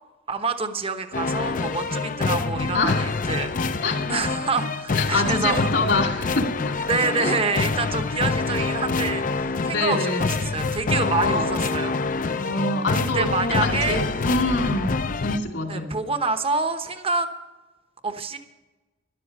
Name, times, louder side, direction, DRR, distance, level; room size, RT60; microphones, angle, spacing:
voice 1, 0.3-3.5 4.1-5.7 6.9-12.0 13.0-14.0 15.7-17.3 18.0-18.4, right 4 dB, 30° right, 8 dB, 1.0 m, -27 dB
sound 1, 1.1-15.4, left 3 dB, 45° left, 0.6 m, -26 dB
voice 2, 2.7-3.2 3.8-4.2 4.9-6.7 7.2-7.4 9.6-10.2 11.0-11.6 12.3-13.3 13.6-14.9 15.2-15.9, left 2 dB, 75° left, 3 dB, 2.5 m, -25 dB
13.0 x 11.5 x 5.4 m, 1.1 s
head